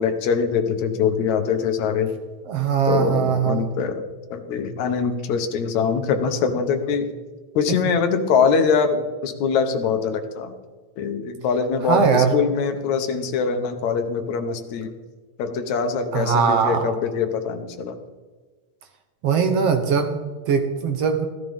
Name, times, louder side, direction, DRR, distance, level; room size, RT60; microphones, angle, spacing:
voice 1, 0.0-2.1 2.9-4.0 4.3-7.1 7.6-10.5 11.0-14.9 15.4-18.0, left 6 dB, 75° left, 7 dB, 2.2 m, -23 dB
voice 2, 2.5-3.7 11.9-12.4 16.1-16.8 19.2-21.3, right 6 dB, 65° right, 5 dB, 1.7 m, -20 dB
14.5 x 14.0 x 3.5 m, 1.3 s
omnidirectional pair, 3.4 m